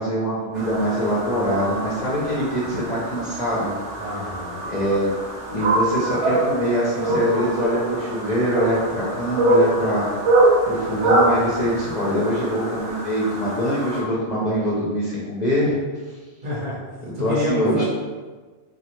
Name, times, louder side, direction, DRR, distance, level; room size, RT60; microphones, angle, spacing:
voice 1, 0.0-3.7 4.7-5.1 5.5-10.1 10.6-15.8 17.2-17.8, equal, 45° left, -7 dB, 0.6 m, -23 dB
sound 1, 0.5-14.0, right 2 dB, 90° right, 1.0 m, -24 dB
voice 2, 4.0-4.6 16.4-16.8 17.1-17.8, left 1 dB, 50° right, -6 dB, 0.8 m, -28 dB
3.2 x 2.4 x 3.0 m, 1.4 s
omnidirectional pair, 1.2 m